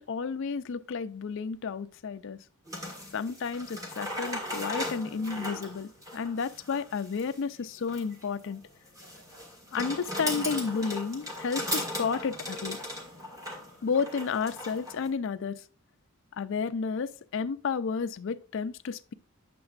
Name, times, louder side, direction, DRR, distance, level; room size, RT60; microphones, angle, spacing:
voice 1, 0.0-2.4 3.1-8.6 9.7-12.8 13.8-15.6 16.4-19.1, left 5 dB, 65° left, 0.4 m, -32 dB
sound 1, 2.7-15.1, left 1 dB, 15° right, 1.7 m, -37 dB
8.7 x 6.8 x 2.4 m
head